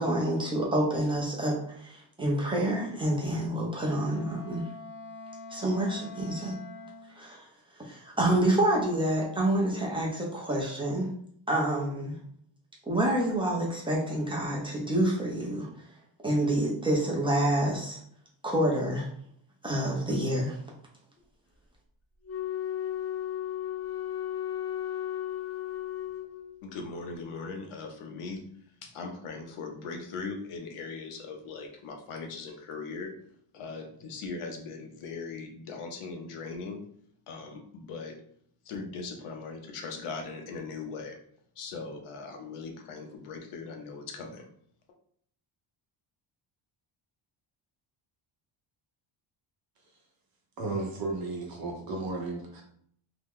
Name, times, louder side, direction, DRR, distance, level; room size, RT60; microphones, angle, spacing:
voice 1, 0.0-4.7 5.5-6.6 7.1-7.5 7.7-11.1 11.5-12.2 12.9-15.7 16.2-18.0 18.4-19.1 19.6-20.6, right 1 dB, 10° right, -3 dB, 0.7 m, -28 dB
Wind instrument woodwind instrument, 3.7-7.2, left 2 dB, 50° left, 0.8 m, -45 dB
Wind instrument woodwind instrument 2, 22.2-26.7, left 11 dB, 30° left, 0.4 m, -34 dB
voice 2, 26.6-28.4 28.8-33.1 33.5-36.8 37.3-38.1 38.6-41.2 41.6-44.4, left 4 dB, 85° left, 3 dB, 0.8 m, -39 dB
voice 3, 50.6-52.6, right 3 dB, 45° right, 0 dB, 0.9 m, -34 dB
2.9 x 2.3 x 3.5 m, 0.65 s
cardioid pair, 155°, 50 cm